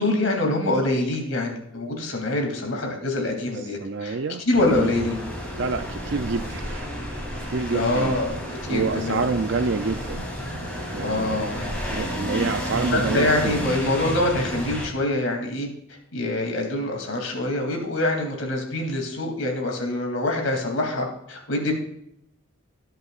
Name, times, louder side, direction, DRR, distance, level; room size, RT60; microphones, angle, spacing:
voice 1, 0.0-4.2 4.5-5.2 7.7-9.2 11.0-11.7 12.9-15.7 16.1-21.7, left 2 dB, 80° left, 2 dB, 2.9 m, -25 dB
voice 2, 3.8-4.4 4.8-4.9 5.6-6.9 7.5-8.2 8.7-10.2 10.9-11.5 11.9-13.6, right 4 dB, 60° right, 7 dB, 0.5 m, -27 dB
sound 1, 4.5-14.9, equal, 5° left, 3.2 m, -31 dB
21.0 x 8.0 x 2.5 m, 0.75 s
head